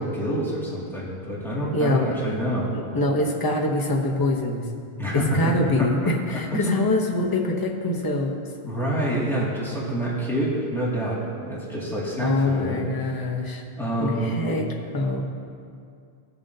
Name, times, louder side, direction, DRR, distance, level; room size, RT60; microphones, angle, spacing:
voice 1, 0.0-2.7 5.0-5.9 6.5-6.7 8.6-11.2 11.5-12.8 13.8-14.3, right 1 dB, ahead, -8 dB, 2.2 m, -27 dB
voice 2, 1.7-2.3 2.7-4.6 5.1-8.4 12.2-13.6 14.0-14.7 14.9-15.2, left 2 dB, 20° left, -1 dB, 0.9 m, -24 dB
16.0 x 7.1 x 2.8 m, 2.3 s
omnidirectional pair, 1.1 m